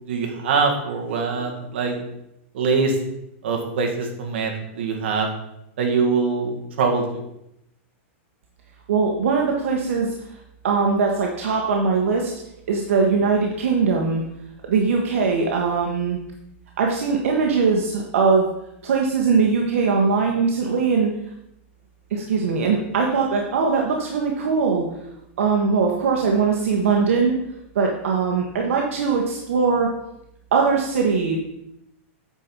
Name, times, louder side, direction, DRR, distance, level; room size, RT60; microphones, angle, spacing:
voice 1, 0.1-2.0 2.5-3.0 3.4-5.3 5.8-7.0, right 4 dB, 60° right, 2 dB, 1.8 m, -23 dB
voice 2, 8.9-10.1 10.6-12.3 12.7-14.2 14.7-16.2 16.8-18.5 18.8-21.1 22.1-24.8 25.4-27.4 27.7-29.9 30.5-31.4, right 5 dB, 75° right, 0 dB, 1.3 m, -21 dB
8.8 x 5.5 x 4.6 m, 0.82 s
supercardioid pair, 175°, 7 cm